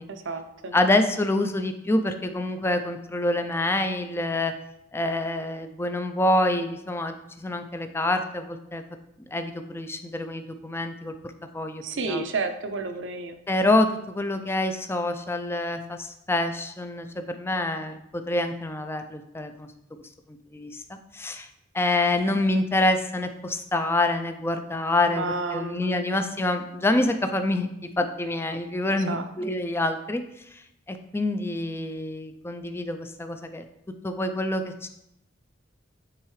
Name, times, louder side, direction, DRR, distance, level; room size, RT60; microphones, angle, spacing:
voice 1, 0.1-0.7 11.8-13.4 25.0-26.3 28.9-29.2, right 3 dB, 70° right, 7 dB, 0.6 m, -31 dB
voice 2, 0.7-4.5 4.9-8.8 9.3-11.1 11.5-12.2 13.5-19.7 20.3-21.5 21.7-25.3 25.5-27.7 28.0-30.2 30.5-30.6 30.9-33.6 34.0-34.9, left 2 dB, 10° left, 7 dB, 0.4 m, -26 dB
8.7 x 3.7 x 3.2 m, 0.82 s
head